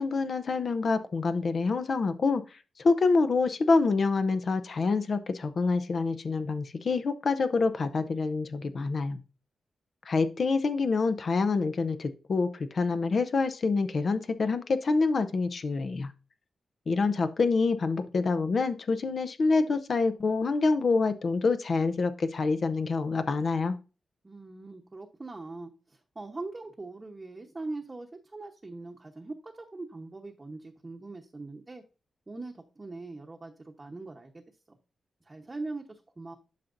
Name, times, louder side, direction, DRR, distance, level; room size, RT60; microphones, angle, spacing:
voice 1, 0.0-9.2 10.1-16.1 16.9-23.8, left 4 dB, 50° left, 9 dB, 0.6 m, -26 dB
voice 2, 24.2-31.8 32.3-34.4 35.2-36.3, right 3 dB, 25° right, 1 dB, 0.9 m, -41 dB
11.5 x 5.8 x 2.6 m, 0.33 s
wide cardioid pair, 115°, 0 cm